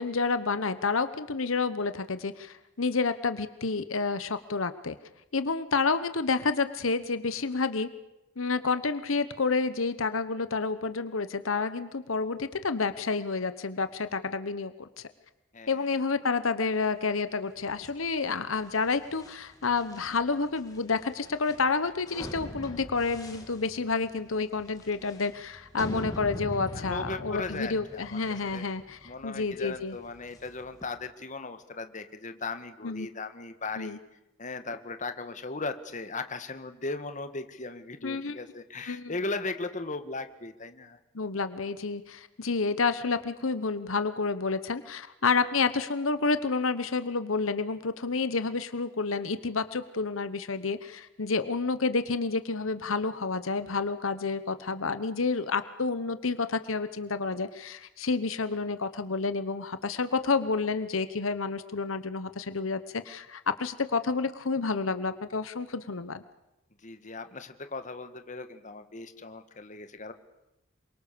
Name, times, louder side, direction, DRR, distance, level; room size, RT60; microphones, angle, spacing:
voice 1, 0.0-5.0 5.3-7.9 8.4-14.9 15.7-29.9 32.8-33.1 33.8-34.0 38.0-38.4 38.9-39.1 41.1-66.2, left 4 dB, 85° left, 12 dB, 1.1 m, -29 dB
voice 2, 15.5-16.0 26.7-28.6 29.0-34.0 34.4-41.0 66.8-70.1, left 3 dB, 40° left, 9 dB, 1.7 m, -37 dB
sound 1, 17.6-30.9, left 1 dB, 20° left, 3.0 m, -43 dB
27.5 x 24.0 x 6.9 m, 0.91 s
head